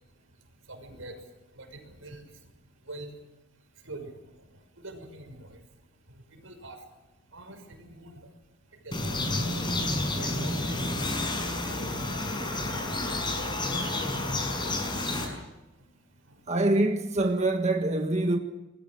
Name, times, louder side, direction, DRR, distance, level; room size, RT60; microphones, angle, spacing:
voice 1, 0.7-1.2 1.5-2.2 2.9-3.1 3.8-4.2 4.8-5.6 6.3-6.8 7.3-8.3 8.8-9.1 10.2-11.0 11.3-11.8 12.1-12.4 15.8-15.9 16.3-16.4, right 2 dB, 90° right, 6.1 m, -45 dB
sound 1, 8.9-15.3, left 2 dB, 25° left, 6.4 m, -30 dB
voice 2, 16.5-18.4, right 2 dB, 35° right, 1.5 m, -25 dB
26.5 x 21.0 x 6.6 m
head